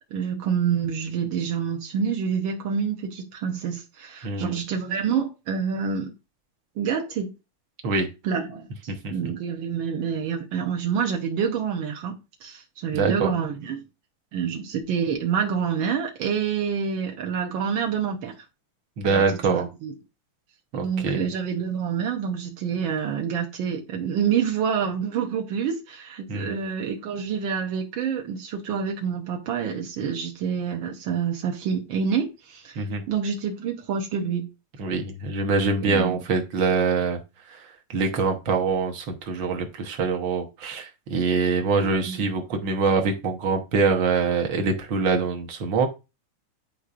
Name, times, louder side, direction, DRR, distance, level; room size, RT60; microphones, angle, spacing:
voice 1, 0.1-6.1 6.8-7.3 8.2-13.8 14.3-18.3 19.1-19.9 20.7-34.5 35.8-36.2 41.8-42.2, right 7 dB, 75° right, 1.1 m, -27 dB
voice 2, 4.2-4.5 7.8-8.1 8.9-9.3 12.9-13.3 19.0-19.7 20.7-21.2 26.3-26.6 32.7-33.0 34.8-37.2 37.5-45.9, right 4 dB, 55° right, 1.3 m, -24 dB
9.8 x 4.6 x 2.5 m
omnidirectional pair, 3.3 m